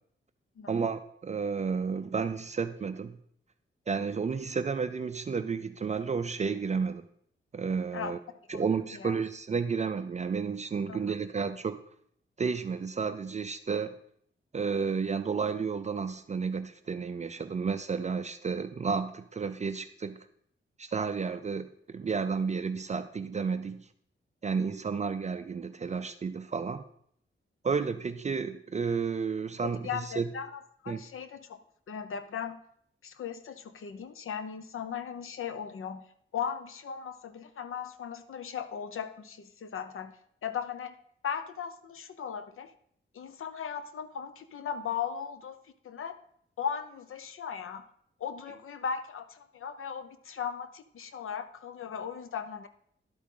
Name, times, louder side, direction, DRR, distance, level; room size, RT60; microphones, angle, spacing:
voice 1, 0.7-3.2 3.9-7.0 7.5-8.2 8.5-11.8 12.4-14.0 14.5-20.2 20.8-23.9 24.4-26.8 27.6-30.3 30.9-31.0, right 5 dB, 35° right, 9 dB, 0.4 m, -32 dB
voice 2, 29.6-31.6 31.9-32.6 33.0-36.1 36.3-40.2 40.4-41.0 41.2-42.7 43.1-45.6 45.8-46.1 46.6-47.8 48.2-52.7, left 7 dB, 80° left, 11 dB, 0.8 m, -37 dB
11.5 x 8.3 x 3.8 m, 0.66 s
wide cardioid pair, 155°, 21 cm